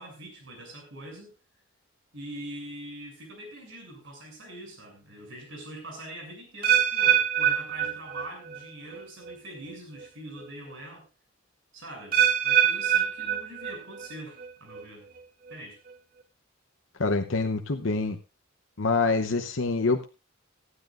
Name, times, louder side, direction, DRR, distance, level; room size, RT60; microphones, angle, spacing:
voice 1, 0.0-1.3 2.1-11.1 11.7-15.1 15.5-15.8, right 1 dB, 65° right, 2 dB, 7.3 m, -43 dB
sound 1, 6.6-8.6 8.9-9.3 10.0-10.1 12.1-14.1 14.4-14.8 15.5-15.6, right 10 dB, 45° right, 1.5 m, -24 dB
voice 2, 17.0-18.2 18.8-20.1, left 3 dB, 65° left, 5 dB, 0.9 m, -26 dB
18.5 x 12.5 x 2.5 m, 0.28 s
head